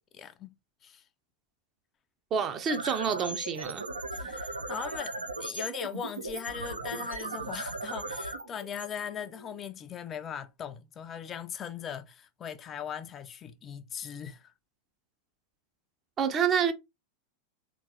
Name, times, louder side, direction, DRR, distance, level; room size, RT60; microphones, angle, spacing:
voice 1, 0.1-0.5 0.8-1.0 4.1-14.5, left 8 dB, 25° left, 0.4 m, -39 dB
voice 2, 2.3-3.9 16.2-16.7, right 7 dB, 25° right, 0.5 m, -28 dB
sound 1, 2.5-9.6, right 2 dB, 80° right, 0.5 m, -38 dB
3.7 x 3.0 x 2.7 m
figure-of-eight pair, 90°, 0 cm